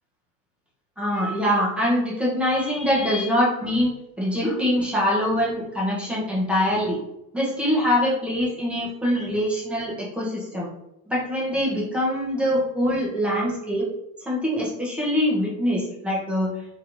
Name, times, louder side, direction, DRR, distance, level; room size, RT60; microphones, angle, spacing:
voice 1, 1.0-3.9 4.2-7.0 7.3-10.7 11.1-13.9 14.2-16.5, equal, 5° right, -6 dB, 0.9 m, -24 dB
3.2 x 3.0 x 2.6 m, 0.83 s
supercardioid pair, 140°, 44 cm